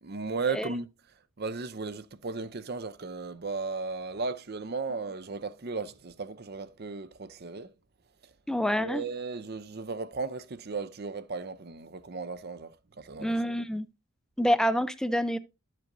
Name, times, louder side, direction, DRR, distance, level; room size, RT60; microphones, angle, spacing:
voice 1, 0.0-0.9 1.4-7.7 8.8-12.7 13.0-13.5, right 4 dB, 45° right, 0.6 m, -35 dB
voice 2, 8.5-9.0 13.2-13.9 14.4-15.4, equal, 5° left, 0.4 m, -27 dB
12.5 x 7.5 x 2.6 m
head